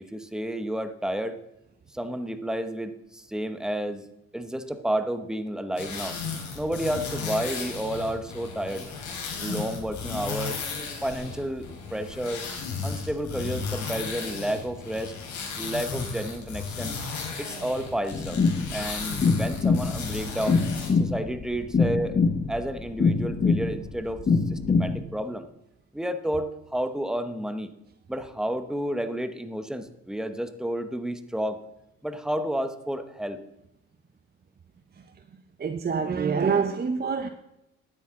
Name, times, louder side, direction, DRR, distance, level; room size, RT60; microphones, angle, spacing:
voice 1, 0.1-1.4 1.9-4.1 4.3-8.9 9.4-10.6 11.0-12.4 12.8-15.1 15.6-17.0 17.4-18.4 18.7-20.6 21.0-22.2 22.5-24.2 24.5-25.5 25.9-27.7 28.1-31.6 32.0-33.4, right 1 dB, ahead, 9 dB, 1.0 m, -31 dB
sound 1, 5.8-20.9, left 5 dB, 70° left, 4.2 m, -35 dB
sound 2, 18.1-25.0, left 4 dB, 35° left, 1.2 m, -24 dB
voice 2, 35.6-37.3, right 5 dB, 30° right, 7 dB, 0.8 m, -26 dB
12.0 x 9.9 x 3.7 m, 0.88 s
cardioid pair, 90°, 30 cm